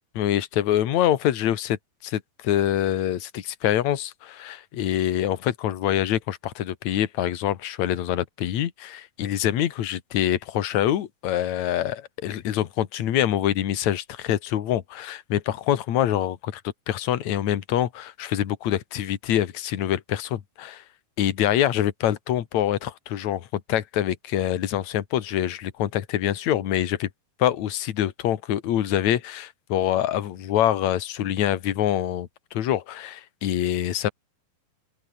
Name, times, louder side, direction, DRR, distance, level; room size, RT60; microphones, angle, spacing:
voice 1, 0.2-16.6 16.9-20.8 21.2-27.1 27.4-34.1, left 11 dB, 60° left, 2.7 m, -25 dB
open air
omnidirectional pair, 4.1 m